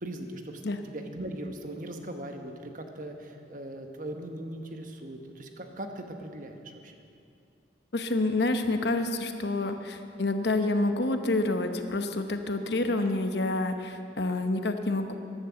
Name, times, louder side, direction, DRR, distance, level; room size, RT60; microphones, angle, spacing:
voice 1, 0.0-0.6 0.9-6.9, right 1 dB, 45° right, 5 dB, 1.2 m, -39 dB
voice 2, 7.9-15.1, left 2 dB, 65° left, 7 dB, 1.0 m, -28 dB
14.0 x 11.0 x 7.0 m, 2.6 s
head